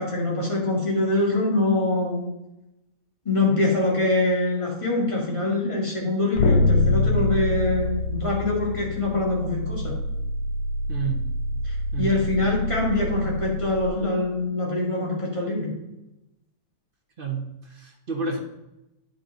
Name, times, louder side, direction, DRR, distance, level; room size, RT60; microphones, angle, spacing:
voice 1, 0.0-2.2 3.3-9.9 11.6-15.7, left 2 dB, 20° left, -3 dB, 2.2 m, -24 dB
sound 1, 6.4-13.9, left 1 dB, 90° left, 1.3 m, -25 dB
voice 2, 10.9-11.2 11.9-12.2 17.2-18.4, right 5 dB, 40° right, 2 dB, 1.0 m, -30 dB
9.7 x 5.4 x 3.8 m, 0.91 s
omnidirectional pair, 1.8 m